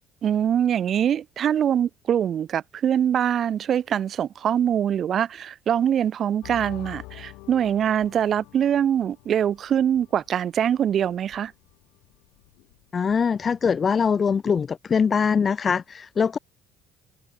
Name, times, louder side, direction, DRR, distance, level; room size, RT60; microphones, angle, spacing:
voice 1, 0.2-11.5, right 9 dB, 45° right, 0.9 m, -23 dB
sound 1, 6.4-13.6, left 24 dB, 60° left, 5.5 m, -47 dB
voice 2, 12.9-16.4, left 6 dB, 30° left, 0.6 m, -22 dB
figure-of-eight pair, 55°, 0 cm